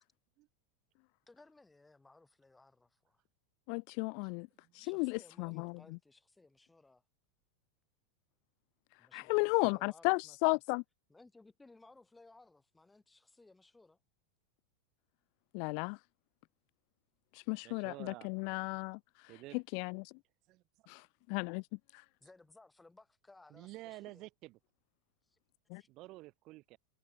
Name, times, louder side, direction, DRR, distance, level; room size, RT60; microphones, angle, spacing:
voice 1, 1.3-3.2 4.8-7.0 9.0-10.6 11.1-14.0 17.8-18.1 22.2-24.3 25.3-25.4 25.7-25.9, left 2 dB, 5° left, 3.8 m, -61 dB
voice 2, 3.7-4.5 4.7-5.7 9.1-10.8 15.5-16.0 17.3-19.0 19.5-20.1 20.9-21.6 21.9-22.0 25.7-25.8, left 40 dB or more, 40° left, 0.3 m, -34 dB
voice 3, 17.6-18.3 19.3-19.6 20.5-20.6 23.5-24.6 25.9-26.8, right 19 dB, 35° right, 1.7 m, -50 dB
supercardioid pair, 175°, 0 cm